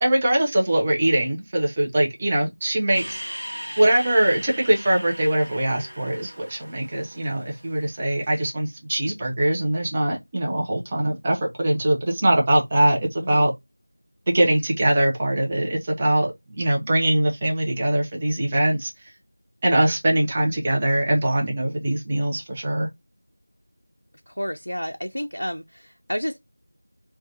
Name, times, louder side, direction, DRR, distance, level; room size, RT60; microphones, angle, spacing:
voice 1, 0.0-3.2 3.8-13.5 14.3-18.9 19.6-22.9, right 1 dB, 15° right, 0.4 m, -22 dB
sound 1, 2.9-8.3, equal, 75° right, 0.5 m, -38 dB
voice 2, 13.2-13.5 24.3-26.4, equal, 80° left, 0.3 m, -31 dB
2.4 x 2.1 x 2.7 m
figure-of-eight pair, 175°, 0 cm